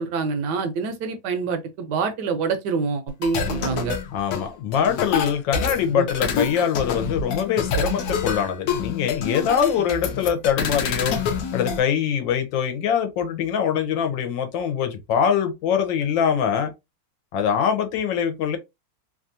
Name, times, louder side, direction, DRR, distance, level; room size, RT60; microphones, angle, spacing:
voice 1, 0.0-4.0 5.9-6.1, right 5 dB, 75° right, 1.1 m, -26 dB
sound 1, 3.1-11.8, left 5 dB, 65° left, 1.0 m, -27 dB
voice 2, 4.1-11.2 11.5-16.7 17.3-18.6, left 8 dB, 85° left, 1.4 m, -23 dB
3.2 x 2.4 x 2.6 m
omnidirectional pair, 2.0 m